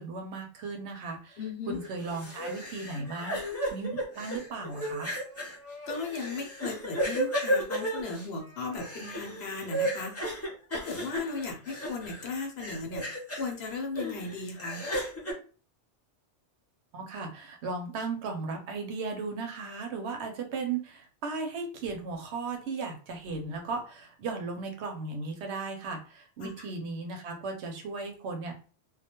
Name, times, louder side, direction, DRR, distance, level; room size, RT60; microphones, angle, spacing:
voice 1, 0.0-1.4 1.7-5.1 16.9-28.6, right 4 dB, 75° right, 3 dB, 0.9 m, -36 dB
voice 2, 1.4-1.8 5.9-10.1 10.9-13.0 13.4-14.8 26.4-26.5, left 4 dB, 65° left, 2 dB, 0.9 m, -36 dB
sound 1, 1.8-12.3 12.6-13.5 13.9-15.3, right 1 dB, 20° left, 0.5 m, -34 dB
2.3 x 2.2 x 2.8 m, 0.38 s
omnidirectional pair, 1.2 m